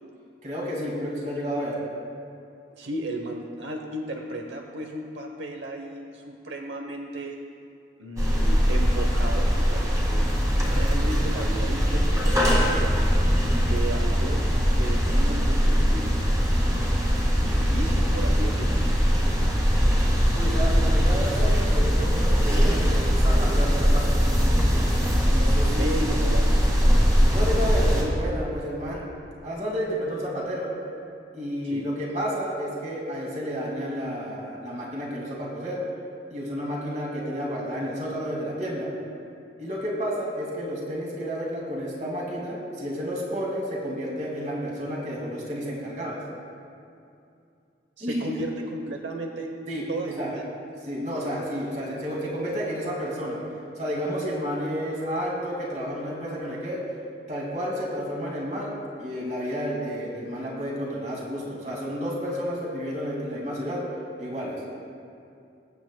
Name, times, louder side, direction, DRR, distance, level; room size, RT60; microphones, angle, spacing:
voice 1, 0.4-1.8 19.5-24.3 25.2-26.0 27.2-29.0 29.4-30.7 31.3-35.8 36.3-38.9 39.6-46.2 48.0-48.2 49.7-50.3 50.9-53.4 53.8-56.8 57.3-63.8 64.2-64.6, equal, 40° right, -3 dB, 2.2 m, -31 dB
voice 2, 2.8-7.4 8.0-13.0 13.6-16.1 17.3-18.8 25.7-26.8 31.6-31.9 48.0-49.5 49.9-50.5, right 1 dB, 85° right, 2 dB, 0.9 m, -34 dB
sound 1, 8.2-28.0, equal, 20° right, 1.9 m, -21 dB
22.0 x 8.4 x 2.2 m, 2.5 s
head